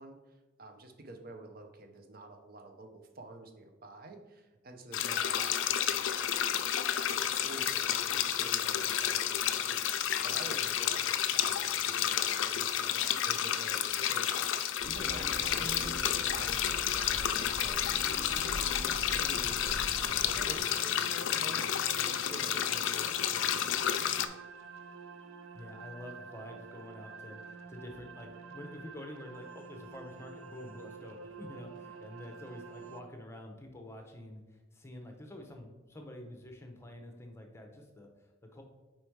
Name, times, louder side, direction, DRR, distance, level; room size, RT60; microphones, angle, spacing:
voice 1, 0.0-6.3 6.9-14.3 14.8-18.6 19.1-19.7 20.2-23.8, right 2 dB, 45° right, 5 dB, 0.7 m, -49 dB
sound 1, 4.9-24.3, left 10 dB, 70° left, 0.4 m, -31 dB
sound 2, 14.8-20.6, equal, 5° right, 1.2 m, -43 dB
sound 3, 18.2-33.0, right 5 dB, 80° right, 0.5 m, -49 dB
voice 2, 25.5-38.6, left 1 dB, 15° left, 3 dB, 0.7 m, -48 dB
5.0 x 4.4 x 4.6 m, 1.2 s
head